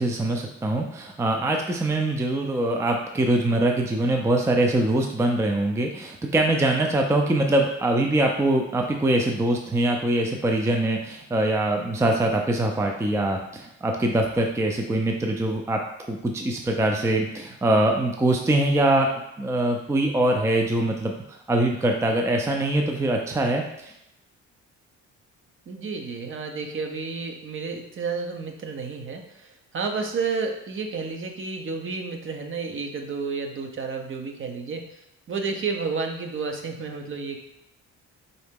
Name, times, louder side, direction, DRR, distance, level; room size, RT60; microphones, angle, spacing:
voice 1, 0.0-15.8 16.1-19.1 19.4-23.9, right 1 dB, 10° right, 2 dB, 0.4 m, -23 dB
voice 2, 25.7-34.8 35.3-37.4, right 4 dB, 40° right, 4 dB, 0.7 m, -31 dB
3.9 x 2.8 x 3.6 m, 0.84 s
cardioid pair, 90°, 30 cm